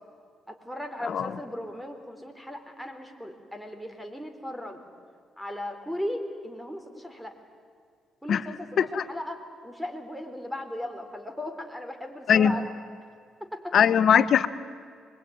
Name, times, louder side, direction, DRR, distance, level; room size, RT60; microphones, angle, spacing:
voice 1, 0.5-4.8 5.4-7.4 8.2-12.8 13.4-13.8, left 1 dB, 5° right, 6 dB, 3.7 m, -37 dB
voice 2, 13.7-14.5, left 8 dB, 60° left, 13 dB, 1.1 m, -20 dB
25.0 x 22.0 x 9.5 m, 2.2 s
cardioid pair, 90°, 0 cm